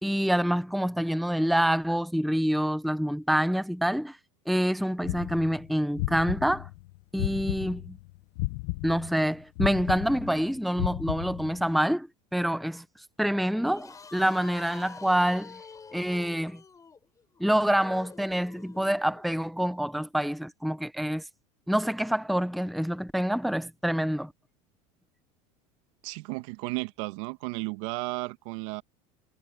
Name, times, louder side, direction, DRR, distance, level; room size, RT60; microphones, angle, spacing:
voice 1, 0.0-4.2 4.5-6.7 7.1-8.0 8.8-12.1 12.3-12.8 13.2-15.6 15.9-16.6 17.4-21.2 21.7-24.3, equal, ahead, 0.8 m, -26 dB
sound 1, 5.0-8.0 8.4-11.7, left 21 dB, 65° left, 1.1 m, -33 dB
sound 2, 13.7-19.2, left 5 dB, 20° left, 7.7 m, -47 dB
voice 2, 26.0-28.8, right 23 dB, 70° right, 1.9 m, -34 dB
supercardioid pair, 135°, 17 cm